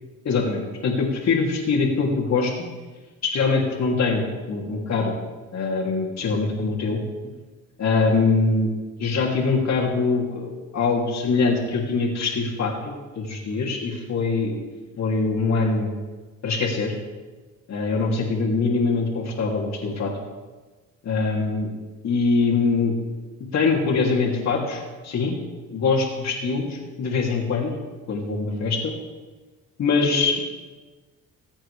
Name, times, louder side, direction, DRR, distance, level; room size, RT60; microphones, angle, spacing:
voice 1, 0.2-2.5 3.2-5.1 5.5-7.0 7.8-8.7 9.0-14.5 15.0-15.9 16.4-16.9 17.7-20.1 21.0-21.7 22.0-22.9 23.5-25.4 25.7-27.7 28.1-28.9 29.8-30.4, left 4 dB, 60° left, -1 dB, 2.9 m, -23 dB
20.5 x 8.6 x 3.4 m, 1.3 s
cardioid pair, 90°, 30 cm